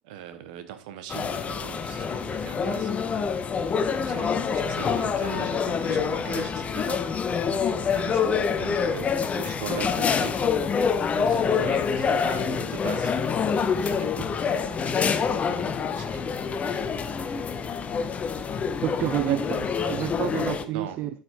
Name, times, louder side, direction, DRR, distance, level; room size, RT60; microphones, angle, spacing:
voice 1, 0.0-2.9 3.9-7.2 7.5-10.4 11.1-13.1 13.7-16.1 18.1-18.2 19.3-19.4 20.6-21.0, right 9 dB, 60° right, 1.2 m, -40 dB
sound 1, 1.1-20.6, left 6 dB, 25° left, 0.9 m, -26 dB
voice 2, 17.9-18.5 18.8-21.1, right 12 dB, 45° right, 0.5 m, -30 dB
12.5 x 4.8 x 3.8 m
figure-of-eight pair, 80°, 5 cm